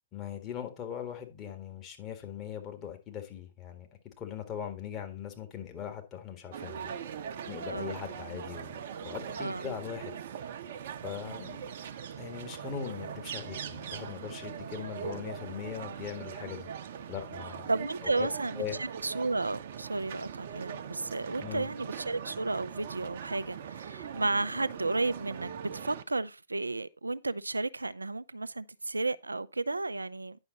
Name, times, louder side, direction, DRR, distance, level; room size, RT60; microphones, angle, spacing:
voice 1, 0.1-6.9 7.5-10.2 11.0-11.6 12.2-16.7 17.1-17.7 18.0-18.3 18.5-18.8 21.4-21.7, left 9 dB, 25° left, 1.7 m, -40 dB
sound 1, 6.5-26.0, right 8 dB, 50° right, 0.8 m, -41 dB
voice 2, 9.4-9.7 17.7-30.4, right 3 dB, 80° right, 0.4 m, -33 dB
9.7 x 6.1 x 4.0 m
figure-of-eight pair, 115°, 0 cm